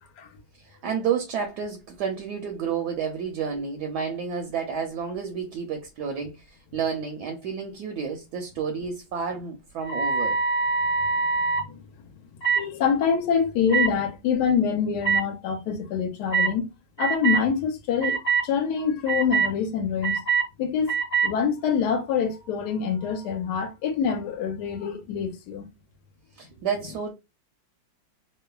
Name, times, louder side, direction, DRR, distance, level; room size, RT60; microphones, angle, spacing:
voice 1, 0.6-6.4 6.7-10.4 26.4-27.1, right 6 dB, 75° right, 1.0 m, -30 dB
sound 1, 9.8-11.6 12.4-12.6 13.7-13.9 15.0-15.2 16.3-16.5 17.0-17.4 18.0-18.4 19.1-19.5 20.0-20.4 20.9-21.3, right 5 dB, 35° left, 1.2 m, -23 dB
voice 2, 12.5-16.6 17.0-20.2 20.6-25.7, left 7 dB, 70° left, 1.1 m, -25 dB
3.1 x 2.0 x 2.2 m
omnidirectional pair, 2.0 m